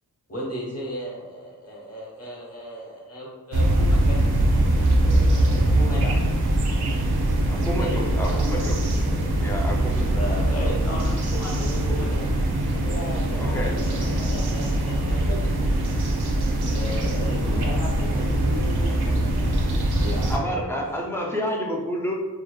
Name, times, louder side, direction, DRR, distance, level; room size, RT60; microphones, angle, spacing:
voice 1, 0.3-4.3 4.9-6.2 7.7-9.3 10.1-12.2 12.8-15.5 16.3-17.8 20.0-21.0, equal, 40° left, -4 dB, 0.9 m, -36 dB
sound 1, 3.5-20.4, right 1 dB, 80° right, 0.5 m, -22 dB
voice 2, 7.5-8.8 9.4-10.4 13.3-13.8 20.3-22.1, equal, 5° left, -1 dB, 0.4 m, -29 dB
voice 3, 12.8-14.8 17.5-19.1, left 2 dB, 80° left, -5 dB, 0.5 m, -37 dB
2.7 x 2.1 x 2.3 m, 1.3 s
wide cardioid pair, 75°, 38 cm